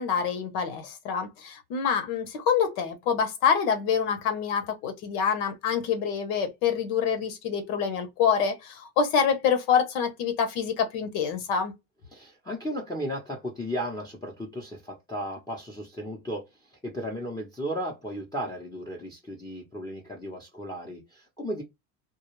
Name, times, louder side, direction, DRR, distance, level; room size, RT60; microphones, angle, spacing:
voice 1, 0.0-11.7, left 7 dB, 80° left, 1.0 m, -26 dB
voice 2, 12.1-21.6, equal, 10° left, 0.7 m, -35 dB
2.4 x 2.2 x 3.0 m
supercardioid pair, 100°, 49 cm